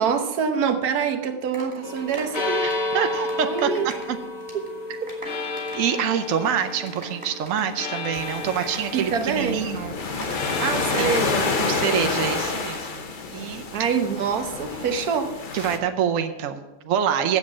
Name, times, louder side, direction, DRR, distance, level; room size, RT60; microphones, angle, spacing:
voice 1, 0.0-2.7 3.4-3.9 4.5-4.7 8.9-9.7 10.6-11.5 13.7-15.4, right 6 dB, 90° right, 1.4 m, -25 dB
sound 1, 1.2-4.2 4.4-4.7 4.9-10.9 11.2-11.5, right 1 dB, 20° right, 2.8 m, -41 dB
sound 2, 1.8-12.3, left 3 dB, 65° left, 1.5 m, -32 dB
voice 2, 2.6-3.7 4.1-4.2 5.7-10.0 11.0-11.1 11.6-13.0 13.3-13.7 15.5-17.4, right 8 dB, 65° right, 1.1 m, -26 dB
sound 3, 8.1-15.8, left 4 dB, 40° left, 0.9 m, -28 dB
7.9 x 7.5 x 7.2 m
omnidirectional pair, 1.6 m